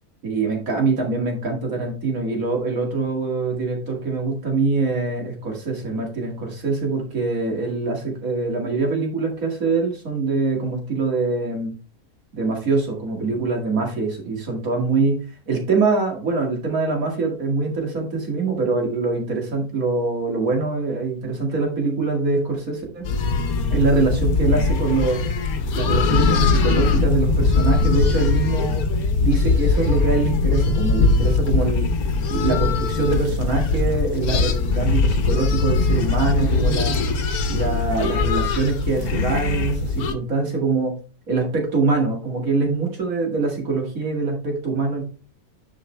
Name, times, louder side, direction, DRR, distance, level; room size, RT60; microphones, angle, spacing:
voice 1, 0.2-11.7 12.3-15.2 15.5-23.1 23.7-25.2 25.7-28.8 29.2-31.9 32.3-36.9 37.5-40.9 41.3-45.0, right 3 dB, 65° right, 0 dB, 2.6 m, -23 dB
sound 1, 23.0-40.1, left 3 dB, 75° left, 1.4 m, -21 dB
10.5 x 4.8 x 3.3 m, 0.37 s
omnidirectional pair, 1.6 m